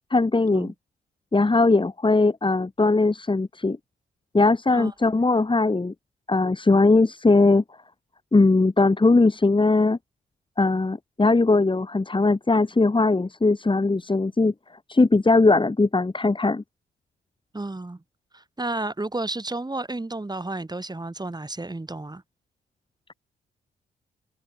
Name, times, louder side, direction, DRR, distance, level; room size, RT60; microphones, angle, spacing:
voice 1, 0.1-0.7 1.3-3.8 4.3-5.9 6.3-7.6 8.3-10.0 10.6-14.5 14.9-16.6, left 3 dB, 25° left, 2.6 m, -20 dB
voice 2, 17.5-18.0 18.3-22.2, right 2 dB, 20° right, 5.9 m, -32 dB
supercardioid pair, 50°, 20 cm